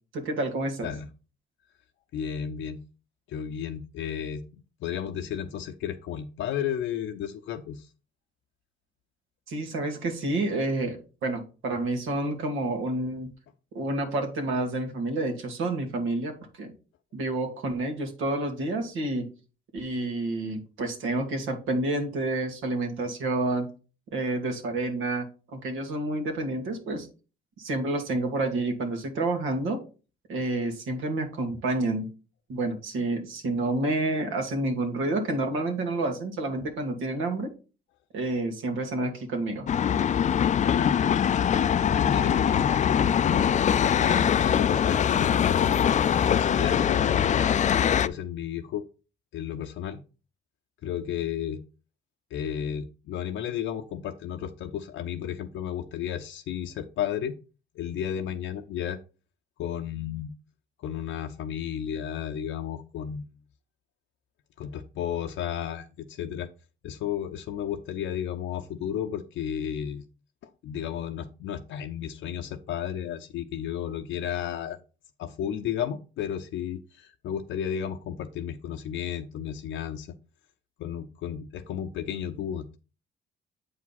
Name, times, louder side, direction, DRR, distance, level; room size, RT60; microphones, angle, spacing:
voice 1, 0.1-0.9 9.5-13.3 13.7-16.7 17.1-19.3 19.7-23.7 24.1-27.1 27.6-29.8 30.3-32.1 32.5-37.5 38.1-39.7, right 2 dB, 85° right, 4 dB, 2.0 m, -29 dB
voice 2, 2.1-2.8 3.3-7.9 40.7-41.2 41.8-48.8 49.3-50.0 50.8-51.6 52.3-57.4 57.7-59.0 59.6-60.3 60.8-63.3 64.6-66.5 66.8-70.1 70.6-74.8 75.2-80.2 80.8-82.8, left 9 dB, 80° left, 4 dB, 0.6 m, -33 dB
sound 1, 39.7-48.1, left 8 dB, 40° left, 0.4 m, -23 dB
8.0 x 4.9 x 4.1 m, 0.33 s
cardioid pair, 90°, 20 cm